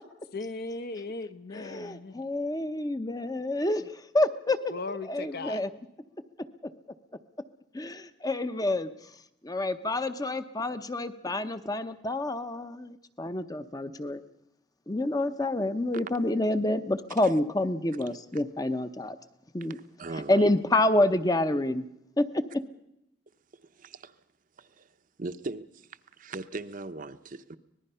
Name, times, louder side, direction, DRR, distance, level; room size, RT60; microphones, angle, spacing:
voice 1, 0.3-2.2 4.7-5.6, left 3 dB, 50° left, 0.9 m, -37 dB
voice 2, 1.5-4.6 4.9-5.7 7.7-8.9 9.4-14.2 14.9-19.2 19.5-19.8 20.3-21.8 22.2-22.6, left 1 dB, 20° left, 0.8 m, -28 dB
voice 3, 19.7-20.5 23.7-24.2 24.6-24.9 25.2-27.6, right 3 dB, 40° right, 0.7 m, -39 dB
25.0 x 19.5 x 5.6 m
head